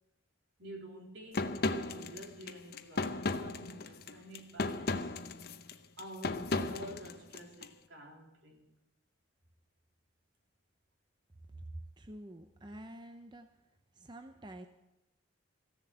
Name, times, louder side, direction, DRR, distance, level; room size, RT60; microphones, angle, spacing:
voice 1, 0.6-5.2 6.0-8.7, right 1 dB, 75° right, 0 dB, 3.2 m, -49 dB
sound 1, 1.3-7.7, left 3 dB, 55° left, 0.7 m, -35 dB
voice 2, 11.5-13.5 13.9-14.7, right 1 dB, 25° right, 7 dB, 0.6 m, -48 dB
15.0 x 7.2 x 9.6 m, 0.94 s
head